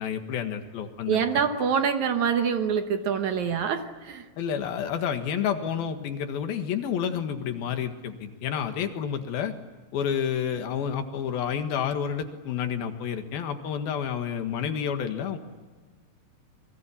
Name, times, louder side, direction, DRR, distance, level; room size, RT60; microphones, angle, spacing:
voice 1, 0.0-1.2 4.4-9.5 9.9-15.4, left 8 dB, 80° left, 7 dB, 3.5 m, -29 dB
voice 2, 1.1-4.3, right 7 dB, 65° right, 7 dB, 2.1 m, -25 dB
29.0 x 22.0 x 8.6 m, 1.3 s
omnidirectional pair, 4.3 m